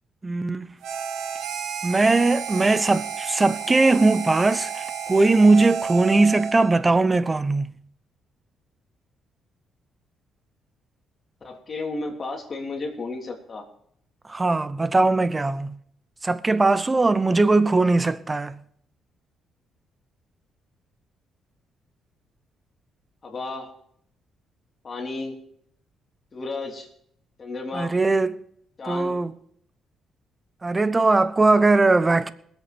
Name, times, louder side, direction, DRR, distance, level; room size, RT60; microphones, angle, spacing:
voice 1, 0.2-0.8 1.8-7.7 14.3-15.7 16.2-18.6 27.7-28.4 28.9-29.3 30.6-32.3, right 3 dB, 20° right, 0.9 m, -20 dB
Harmonica, 0.8-6.8, right 7 dB, 85° right, 1.9 m, -32 dB
voice 2, 11.4-13.6 23.2-23.7 24.8-25.4 26.3-26.9 27.4-27.9 28.8-29.1, left 3 dB, 40° left, 3.3 m, -33 dB
20.5 x 8.3 x 5.2 m
cardioid pair, 90°, 0 cm